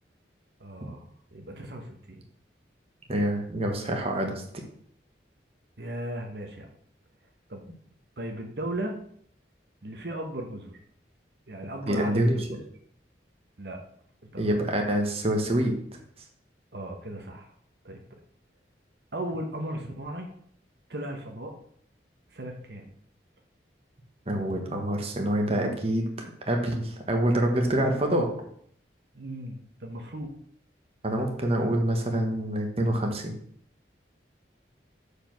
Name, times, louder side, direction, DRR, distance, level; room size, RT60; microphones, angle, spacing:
voice 1, 0.6-1.1 1.3-2.2 5.8-6.7 7.5-7.6 8.2-9.0 9.8-10.8 11.5-12.6 13.6-13.8 14.3-14.6 16.7-17.5 17.8-18.0 19.1-20.3 20.9-21.5 22.3-22.8 29.1-30.3, right 1 dB, 65° right, 3 dB, 1.2 m, -36 dB
voice 2, 3.1-4.4 11.9-12.4 14.4-15.7 24.3-28.3 31.0-33.3, right 1 dB, 35° right, 2 dB, 1.3 m, -26 dB
7.0 x 5.0 x 6.0 m, 0.63 s
head